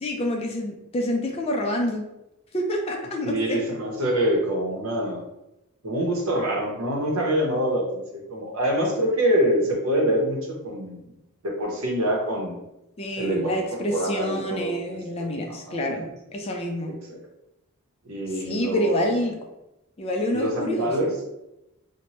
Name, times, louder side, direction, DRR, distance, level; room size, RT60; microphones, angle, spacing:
voice 1, 0.0-2.1 2.5-3.6 13.0-17.0 18.4-19.4 20.0-20.9, left 1 dB, 25° left, 1 dB, 0.3 m, -27 dB
voice 2, 3.2-5.2 5.8-11.2 11.4-12.6 13.2-16.1 17.1-17.2 18.0-19.1 20.3-21.3, equal, 75° right, 0 dB, 0.7 m, -26 dB
2.7 x 2.1 x 3.0 m, 0.90 s
head